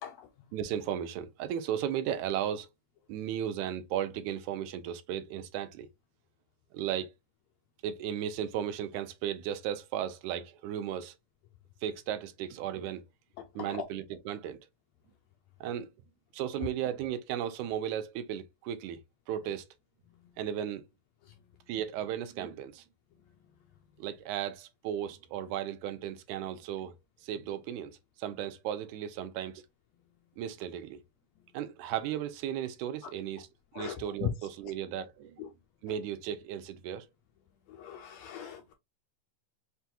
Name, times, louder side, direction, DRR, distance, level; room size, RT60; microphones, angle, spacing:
voice 1, 0.5-2.7 3.1-5.9 6.7-7.1 7.8-11.1 11.8-13.0 13.6-14.7 15.6-15.9 16.3-19.0 19.3-19.7 20.4-20.8 21.7-22.8 24.0-26.9 27.2-29.6 30.4-31.0 31.5-33.5 33.8-35.5 35.8-37.1, right 10 dB, 85° right, 2.0 m, -35 dB
voice 2, 13.4-13.8 33.7-33.9 34.2-34.3 35.4-35.5 37.7-38.7, left 11 dB, 80° left, 1.6 m, -38 dB
5.8 x 2.3 x 2.7 m
omnidirectional pair, 3.5 m